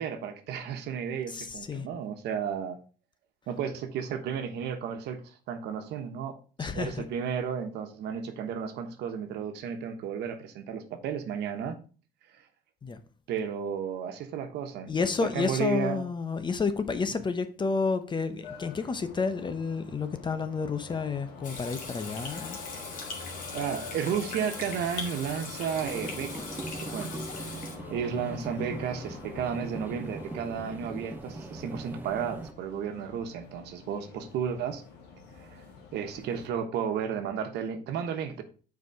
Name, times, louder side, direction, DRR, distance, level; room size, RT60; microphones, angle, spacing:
voice 1, 0.0-2.8 3.5-11.8 12.3-12.5 13.3-16.1 17.1-17.2 23.5-26.6 26.9-27.1 27.4-34.8 35.3-35.6 35.9-38.4, right 7 dB, 80° right, 1.2 m, -33 dB
voice 2, 1.3-1.9 6.6-7.0 12.8-13.0 14.9-22.6, left 4 dB, 25° left, 0.8 m, -30 dB
sound 1, 18.4-36.5, left 4 dB, 85° left, 2.3 m, -46 dB
Water tap faucet / Sink (filling or washing), 21.4-27.8, left 4 dB, 50° left, 2.1 m, -40 dB
sound 2, 25.8-32.5, right 3 dB, 10° right, 0.7 m, -41 dB
6.8 x 4.7 x 4.8 m
cardioid pair, 110°, 17 cm